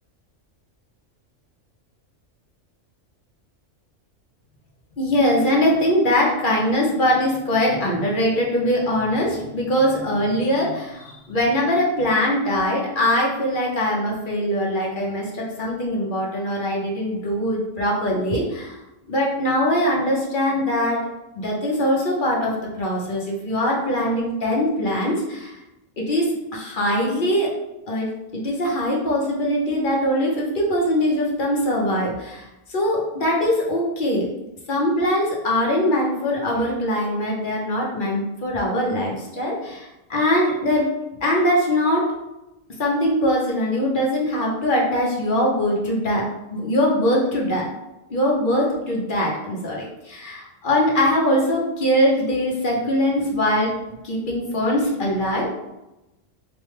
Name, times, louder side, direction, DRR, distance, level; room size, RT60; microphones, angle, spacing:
voice 1, 5.0-18.8 19.1-21.0 21.3-25.6 26.0-27.5 27.9-34.3 34.7-40.9 41.2-42.1 42.8-46.2 46.5-47.7 48.1-53.7 54.0-55.5, equal, 50° left, -3 dB, 0.8 m, -22 dB
3.1 x 2.1 x 3.2 m, 0.93 s
omnidirectional pair, 1.3 m